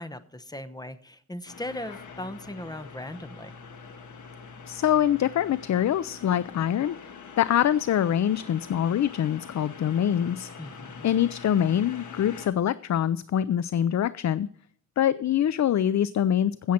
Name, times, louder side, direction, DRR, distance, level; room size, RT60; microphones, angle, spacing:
voice 1, 0.0-3.5 10.6-11.1, left 1 dB, 15° left, 12 dB, 0.9 m, -38 dB
sound 1, 1.5-12.5, left 5 dB, 85° left, 1.4 m, -44 dB
voice 2, 4.7-10.5 11.0-14.5 15.0-16.7, left 10 dB, 70° left, 17 dB, 0.4 m, -24 dB
16.0 x 7.3 x 4.3 m, 0.62 s
wide cardioid pair, 85°, 30 cm